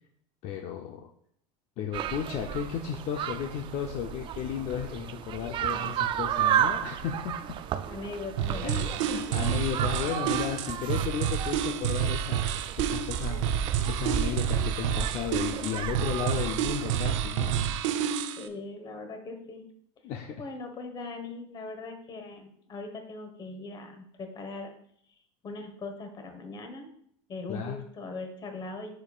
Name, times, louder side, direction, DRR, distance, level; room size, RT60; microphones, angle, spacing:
voice 1, 0.4-1.1 1.8-7.6 8.6-17.6 20.0-20.4 27.5-27.8, left 8 dB, 45° left, 2 dB, 0.6 m, -34 dB
sound 1, 1.9-17.0, right 10 dB, 30° right, 0.3 m, -33 dB
voice 2, 7.9-9.6 18.4-19.7 20.4-24.7 25.4-26.9 27.3-28.9, left 3 dB, 25° left, 5 dB, 1.3 m, -40 dB
sound 2, 8.4-18.5, right 9 dB, 85° right, 0.6 m, -29 dB
10.5 x 4.4 x 2.4 m, 0.67 s
supercardioid pair, 135°, 16 cm